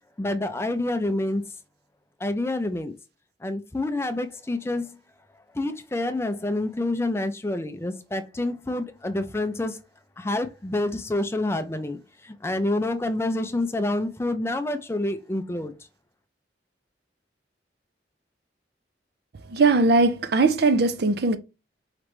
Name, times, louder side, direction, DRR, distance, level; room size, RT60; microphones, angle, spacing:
voice 1, 0.2-1.4 2.2-2.9 3.4-5.0 5.5-9.8 10.2-15.7, left 2 dB, 15° left, 0.4 m, -27 dB
voice 2, 19.5-21.4, right 3 dB, 60° right, 0.5 m, -20 dB
4.9 x 3.2 x 3.1 m
head